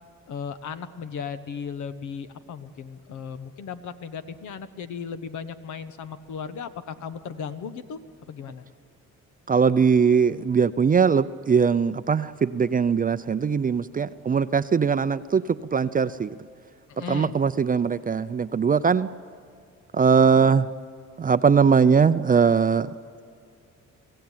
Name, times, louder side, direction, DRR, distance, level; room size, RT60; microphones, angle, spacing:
voice 1, 0.3-8.0 8.3-8.7 16.9-17.4, left 6 dB, 75° left, 10 dB, 1.2 m, -36 dB
voice 2, 9.5-16.3 17.0-19.1 19.9-20.7 21.2-22.9, right 6 dB, 30° right, 12 dB, 0.5 m, -21 dB
24.5 x 15.5 x 9.0 m, 2.3 s
cardioid pair, 90°, 30 cm